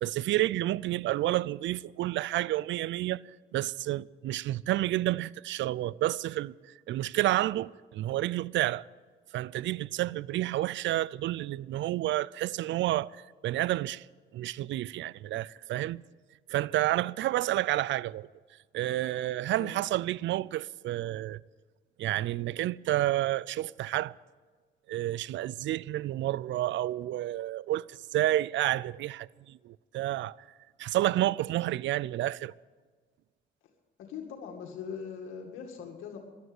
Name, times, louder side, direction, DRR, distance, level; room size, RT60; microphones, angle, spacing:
voice 1, 0.0-3.2 3.5-8.9 9.3-14.1 14.3-16.0 16.5-18.3 18.7-21.4 22.0-24.2 24.9-30.4 30.8-32.5, right 15 dB, 70° right, 0.4 m, -30 dB
voice 2, 34.0-36.2, left 7 dB, 85° left, 2.1 m, -41 dB
14.0 x 12.0 x 8.0 m
cardioid pair, 90°, 20 cm